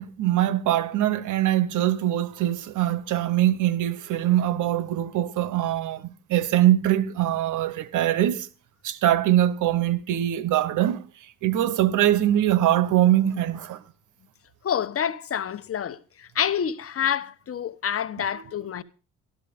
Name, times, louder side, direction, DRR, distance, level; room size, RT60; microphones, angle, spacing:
voice 1, 0.0-8.5 8.8-11.0 11.4-13.8, right 13 dB, 80° right, 1.1 m, -23 dB
voice 2, 14.6-18.8, left 8 dB, 50° left, 1.2 m, -28 dB
13.0 x 12.5 x 5.1 m
cardioid pair, 90°, 30 cm